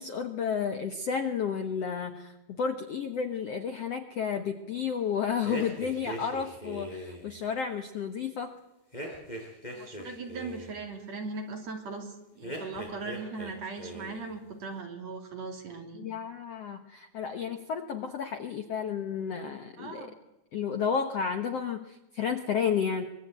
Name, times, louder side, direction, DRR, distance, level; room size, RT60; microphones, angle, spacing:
voice 1, 0.0-8.5 16.0-20.1 20.5-23.1, left 7 dB, 65° left, 7 dB, 1.5 m, -32 dB
sound 1, 5.4-7.3 8.9-10.8 12.4-13.5 13.8-14.3, equal, 10° left, 5.3 m, -40 dB
voice 2, 9.7-16.1 19.8-20.1, right 4 dB, 45° right, 3 dB, 3.7 m, -39 dB
24.5 x 21.0 x 9.0 m, 0.90 s
omnidirectional pair, 4.5 m